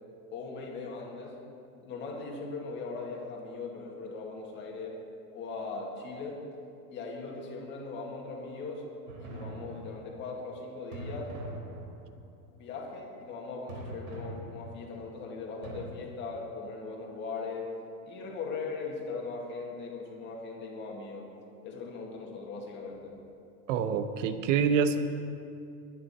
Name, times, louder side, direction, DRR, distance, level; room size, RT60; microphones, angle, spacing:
voice 1, 0.3-1.4 1.8-5.0 5.3-6.5 6.9-8.9 9.2-11.3 12.5-17.7 18.0-21.3 21.6-23.2, left 4 dB, 25° left, -1 dB, 2.0 m, -39 dB
sound 1, 9.1-10.3 10.9-12.3 13.7-15.1 15.6-15.8, right 2 dB, 75° right, 3.7 m, -42 dB
voice 2, 23.7-25.0, right 6 dB, 55° right, 10 dB, 1.0 m, -26 dB
22.5 x 9.7 x 4.2 m, 2.5 s
supercardioid pair, 170°, 44 cm